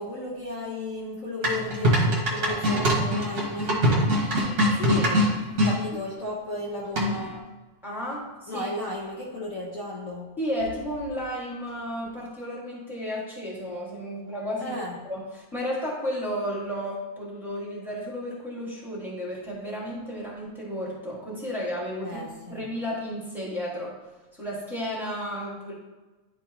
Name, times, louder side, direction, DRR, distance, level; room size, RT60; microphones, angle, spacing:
voice 1, 0.0-3.8 5.6-7.3 8.5-10.3 14.6-14.9 22.0-22.6, left 1 dB, 90° left, -6 dB, 0.7 m, -34 dB
sound 1, 1.4-5.7 6.9-7.4, equal, 45° right, 1.3 m, -23 dB
voice 2, 4.8-5.3 7.8-8.7 10.4-14.8 15.0-22.2 22.5-23.9 24.4-25.7, equal, ahead, -7 dB, 1.1 m, -33 dB
10.5 x 4.4 x 3.0 m, 1.2 s
omnidirectional pair, 3.4 m